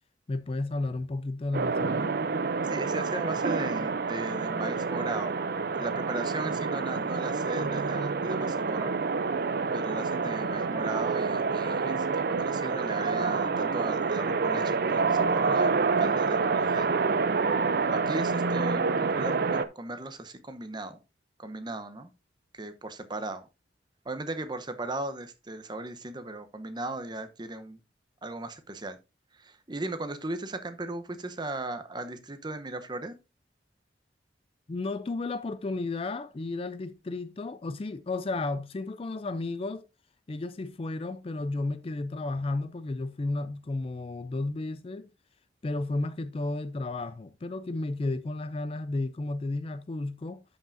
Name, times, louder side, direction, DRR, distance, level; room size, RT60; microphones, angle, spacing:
voice 1, 0.3-2.2 34.7-39.9 40.3-45.1 45.6-50.4, left 2 dB, 30° left, 0.4 m, -33 dB
sound 1, 1.5-19.7, right 4 dB, 55° right, 0.5 m, -28 dB
voice 2, 2.7-5.4 5.7-8.9 9.7-17.0 17.9-21.0 21.4-22.1 22.5-23.5 24.0-27.8 28.2-29.0 29.4-33.1, right 2 dB, 25° right, 0.8 m, -37 dB
12.0 x 5.7 x 2.6 m
head